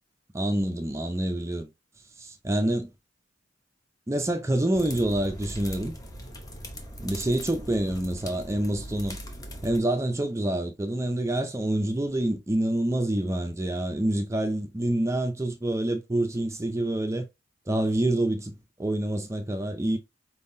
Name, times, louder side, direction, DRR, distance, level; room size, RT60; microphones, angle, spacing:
voice 1, 0.3-1.7 2.2-2.9 4.1-5.9 7.0-9.2 9.6-17.3 17.7-20.0, right 1 dB, 15° right, 0.4 m, -27 dB
sound 1, 4.7-9.8, equal, 20° left, 0.7 m, -40 dB
4.6 x 3.6 x 2.6 m
head